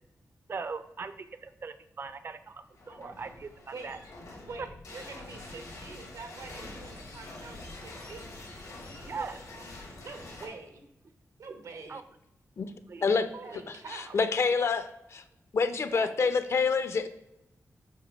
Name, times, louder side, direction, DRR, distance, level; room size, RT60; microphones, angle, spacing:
voice 1, 0.5-1.1 1.4-3.5 3.8-4.0 9.1-9.4 11.9-12.0 12.9-13.1 13.4-13.5 15.9-16.1, right 4 dB, 45° right, 12 dB, 0.5 m, -39 dB
sound 1, 2.7-10.5, left 2 dB, 85° left, 2.2 m, -45 dB
voice 2, 4.5-8.2 10.0-10.8 11.4-12.0 13.3-14.2, right 4 dB, 90° right, 5 dB, 1.1 m, -45 dB
voice 3, 13.9-15.2 15.5-17.1, left 5 dB, 55° left, 11 dB, 0.6 m, -27 dB
7.4 x 3.0 x 5.2 m, 0.87 s
wide cardioid pair, 120°, 6 cm